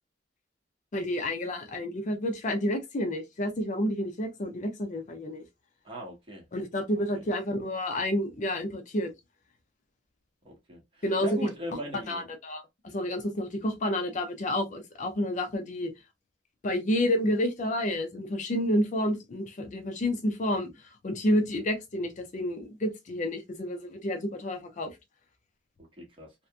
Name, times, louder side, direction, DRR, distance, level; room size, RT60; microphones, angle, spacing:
voice 1, 0.9-5.4 6.5-9.1 11.0-11.5 11.9-15.9 16.6-20.7 21.0-25.0, left 1 dB, 40° left, 0.5 m, -29 dB
voice 2, 5.8-6.4 7.1-7.2 10.4-10.8 11.2-12.2 26.0-26.3, equal, 30° right, 1.1 m, -38 dB
2.8 x 2.5 x 2.2 m
head